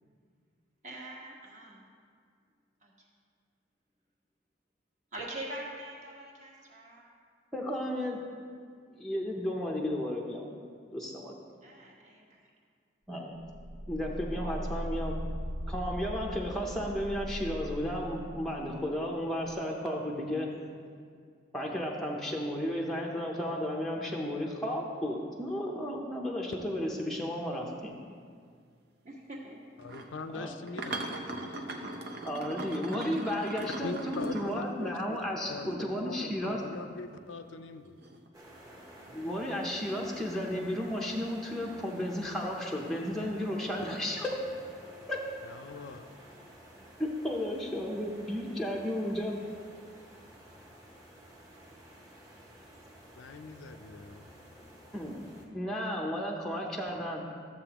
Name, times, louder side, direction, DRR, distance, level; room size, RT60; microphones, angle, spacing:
voice 1, 0.8-1.8 2.8-2.9 5.1-7.1 11.6-12.5 29.0-29.6, right 1 dB, 40° right, -3 dB, 1.4 m, -43 dB
voice 2, 7.5-8.2 8.9-10.4 10.9-11.4 13.1-13.3 13.9-15.2 15.7-20.5 21.5-27.9 30.3-30.5 32.2-36.6 39.1-44.5 45.1-45.2 47.2-49.4 54.9-57.2, equal, ahead, -2 dB, 0.6 m, -33 dB
sound 1, 13.4-18.9 19.4-19.5, equal, 80° right, 1.8 m, -39 dB
voice 3, 29.8-31.7 33.8-35.2 35.5-38.0 45.4-46.1 53.2-54.3, left 3 dB, 75° left, 8 dB, 0.5 m, -42 dB
sound 2, 29.8-30.1 30.7-35.0 38.0-38.3, right 2 dB, 55° right, 0.7 m, -39 dB
sound 3, 38.3-55.5, equal, 15° right, 1.0 m, -52 dB
13.0 x 7.3 x 2.9 m, 2.1 s
head